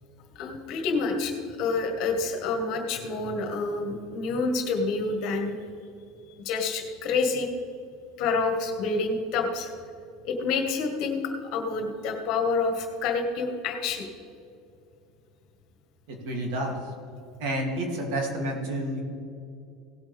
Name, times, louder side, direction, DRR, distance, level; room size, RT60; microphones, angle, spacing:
voice 1, 0.3-5.6 6.4-7.5 8.2-9.7 10.2-14.1, left 4 dB, 55° left, 4 dB, 1.7 m, -28 dB
voice 2, 16.1-16.7 17.4-19.0, right 1 dB, 70° right, 0 dB, 2.9 m, -29 dB
17.5 x 8.2 x 3.6 m, 2.6 s
supercardioid pair, 145°, 0 cm